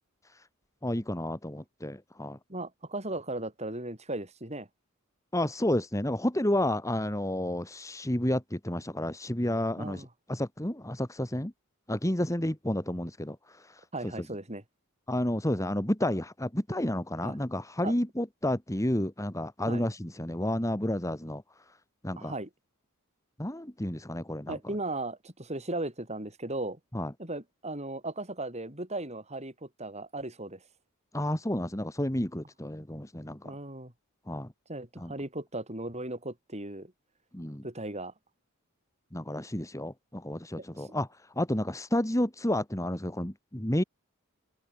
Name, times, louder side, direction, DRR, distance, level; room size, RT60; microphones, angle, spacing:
voice 1, 0.8-2.4 5.3-11.5 11.9-13.8 14.2-14.3 15.1-21.4 22.0-22.3 23.4-24.6 26.9-27.1 31.1-33.5 34.3-34.5 35.0-35.1 37.3-37.7 39.1-41.1 41.4-43.8, left 1 dB, 15° left, 2.0 m, -31 dB
voice 2, 2.5-4.7 9.8-10.1 13.9-14.6 17.2-17.3 17.8-17.9 19.7-19.8 22.2-22.5 24.5-26.8 27.2-30.6 33.4-33.9 34.7-36.9 37.6-38.1 40.6-40.9, right 2 dB, 30° right, 6.8 m, -37 dB
head